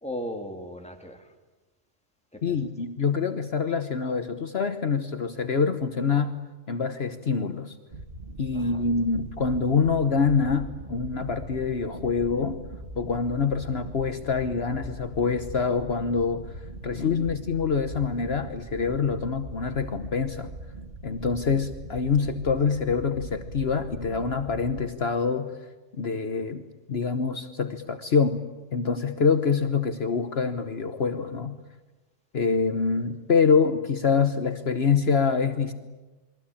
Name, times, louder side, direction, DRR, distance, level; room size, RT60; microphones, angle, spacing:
voice 1, 0.0-1.3 2.3-2.7 8.5-8.9, equal, 5° left, 3 dB, 2.8 m, -37 dB
voice 2, 2.4-6.3 6.7-7.7 8.4-12.6 13.0-16.5 16.8-20.5 21.0-25.5 25.9-26.6 26.9-28.4 28.7-31.6 32.3-35.7, left 5 dB, 60° left, 8 dB, 1.4 m, -25 dB
sound 1, 7.9-24.9, right 1 dB, 45° right, 2.1 m, -41 dB
29.0 x 22.5 x 8.7 m, 1.2 s
omnidirectional pair, 1.2 m